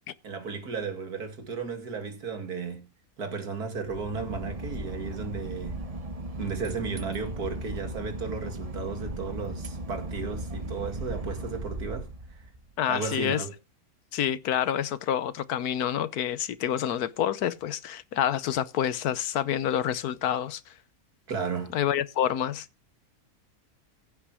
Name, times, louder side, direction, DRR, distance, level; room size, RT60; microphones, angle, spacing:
voice 1, 0.2-2.9 3.2-5.8 6.4-12.1 12.3-12.4 12.9-13.5 21.3-21.7, right 5 dB, 85° right, 2.7 m, -34 dB
Boat Water vehicle / Engine, 3.8-12.7, right 1 dB, 30° right, 1.0 m, -37 dB
voice 2, 12.8-13.4 14.1-20.7 21.7-22.7, left 10 dB, 85° left, 1.3 m, -28 dB
15.5 x 6.0 x 4.8 m
omnidirectional pair, 1.6 m